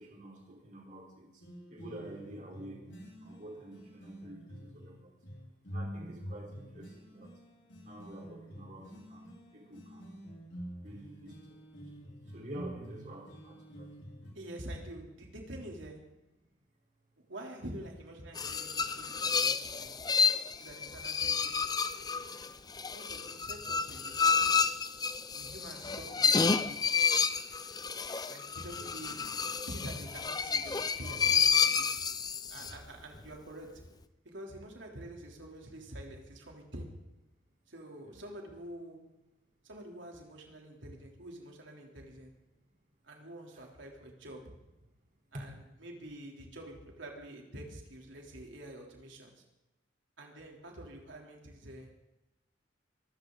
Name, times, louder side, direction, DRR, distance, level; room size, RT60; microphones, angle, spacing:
voice 1, 0.0-2.9 3.2-5.1 5.7-7.4 7.8-10.1 10.8-13.9 16.4-16.5 25.0-25.1 28.8-28.9 32.5-32.7 38.0-38.2 43.5-43.7 45.3-45.4, right 1 dB, 40° right, 0 dB, 4.1 m, -49 dB
sound 1, 1.4-14.3, equal, 65° left, 5.9 m, -47 dB
voice 2, 14.3-16.0 17.3-19.9 20.6-22.3 22.9-24.5 25.3-26.8 28.3-29.2 29.7-32.0 32.5-33.8 34.3-36.9 37.7-39.0 39.6-42.3 43.0-44.4 45.3-45.5 45.8-49.4 50.2-51.9, right 1 dB, 75° right, 0 dB, 3.5 m, -47 dB
sound 2, 18.3-32.8, left 5 dB, 20° left, 0.6 m, -30 dB
24.5 x 13.5 x 4.0 m, 0.98 s
head